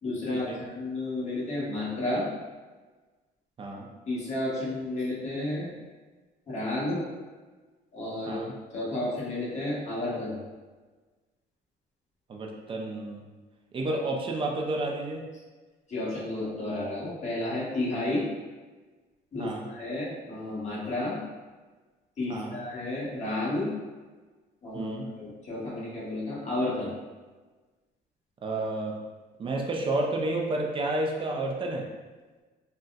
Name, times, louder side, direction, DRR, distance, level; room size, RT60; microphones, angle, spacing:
voice 1, 0.0-2.3 4.1-5.7 6.5-7.0 7.9-8.4 8.7-10.4 15.9-18.3 19.3-21.2 22.2-23.7 24.6-26.9, left 2 dB, 40° left, -7 dB, 1.2 m, -31 dB
voice 2, 3.6-3.9 8.3-8.6 12.3-13.2 13.7-15.3 19.4-19.7 22.3-22.6 24.7-25.1 28.4-29.0 29.4-31.9, right 2 dB, 30° right, 0 dB, 0.5 m, -31 dB
3.9 x 2.2 x 2.3 m, 1.3 s
cardioid pair, 110°, 17 cm